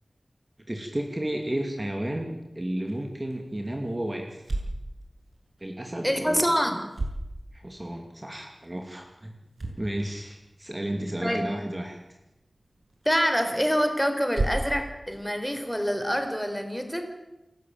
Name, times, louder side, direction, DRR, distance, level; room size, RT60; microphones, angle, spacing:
voice 1, 0.7-4.4 5.6-6.4 7.5-9.3 9.7-12.0, right 1 dB, 25° right, 3 dB, 2.6 m, -32 dB
sound 1, 2.7-16.3, right 2 dB, 65° right, 6.7 m, -39 dB
voice 2, 6.0-6.8 11.2-11.4 13.0-17.1, equal, ahead, 6 dB, 4.3 m, -26 dB
28.0 x 13.5 x 8.9 m, 0.96 s
wide cardioid pair, 65°, 0 cm